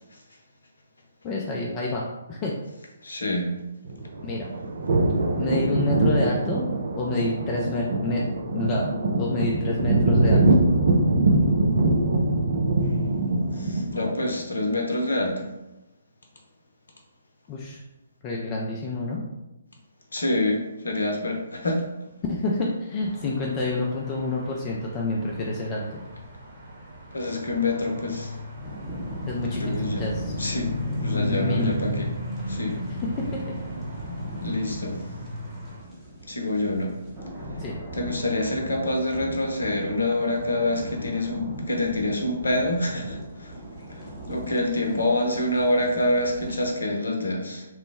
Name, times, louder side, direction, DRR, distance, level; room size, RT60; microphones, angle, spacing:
voice 1, 1.2-2.0 2.3-2.5 4.2-4.5 5.4-6.7 7.0-8.2 8.5-8.9 9.2-10.6 17.5-17.8 18.2-19.2 22.3-25.9 29.3-30.3 30.8-31.7 33.2-33.4 37.6-37.7, left 2 dB, 25° left, -3 dB, 0.4 m, -28 dB
voice 2, 3.0-3.5 12.8-13.0 13.5-15.5 20.1-21.8 27.1-28.3 29.6-30.0 30.4-30.7 31.0-32.1 32.5-32.8 34.4-35.0 36.3-36.9 37.9-43.5 43.9-47.7, left 1 dB, 70° left, 2 dB, 0.7 m, -26 dB
sound 1, 3.8-14.3, right 2 dB, 60° right, 0.5 m, -23 dB
sound 2, 23.0-35.8, equal, 35° right, 1.0 m, -34 dB
sound 3, 28.6-46.8, equal, 10° right, 0.8 m, -39 dB
3.1 x 2.0 x 3.3 m, 0.97 s
figure-of-eight pair, 135°, 0 cm